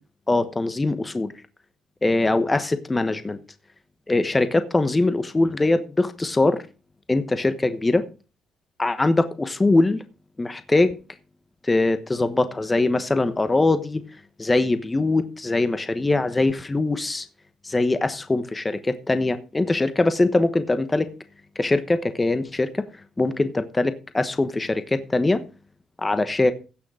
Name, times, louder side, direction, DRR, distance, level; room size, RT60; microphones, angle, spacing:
voice 1, 0.3-1.3 2.0-3.4 4.1-6.6 7.1-8.0 8.8-10.0 10.4-10.9 11.6-14.0 14.4-17.2 17.6-21.1 21.6-22.9 23.2-25.4 26.0-26.5, left 2 dB, 20° left, 11 dB, 1.1 m, -22 dB
16.0 x 6.3 x 4.9 m, 0.33 s
cardioid pair, 90°, 0 cm